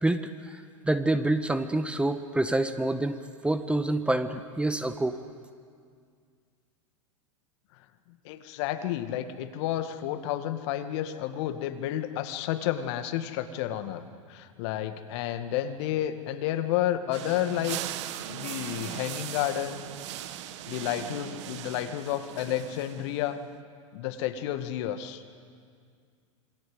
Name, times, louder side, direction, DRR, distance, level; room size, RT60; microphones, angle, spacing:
voice 1, 0.0-0.6 0.8-3.2 3.4-5.2, right 2 dB, 5° right, 10 dB, 1.4 m, -27 dB
voice 2, 8.2-14.0 14.3-17.8 18.3-19.9 20.7-23.4 23.9-25.2, left 12 dB, 55° left, 9 dB, 2.1 m, -31 dB
sound 1, 17.1-23.4, right 12 dB, 60° right, 1.6 m, -39 dB
27.5 x 24.5 x 8.0 m, 2.1 s
figure-of-eight pair, 90°, 17 cm